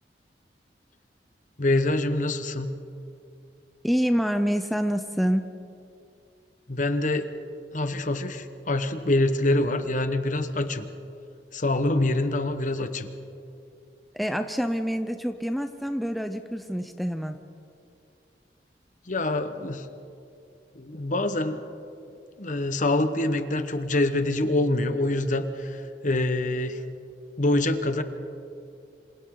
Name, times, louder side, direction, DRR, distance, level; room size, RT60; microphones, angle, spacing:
voice 1, 1.6-2.7 6.7-7.3 7.7-10.9 11.5-13.1 19.1-19.8 20.7-21.6 22.4-26.8 27.4-28.0, left 2 dB, 45° left, 9 dB, 1.2 m, -25 dB
voice 2, 3.8-5.5 14.1-17.4, equal, ahead, 7 dB, 0.6 m, -27 dB
27.5 x 26.5 x 3.9 m, 2.5 s
head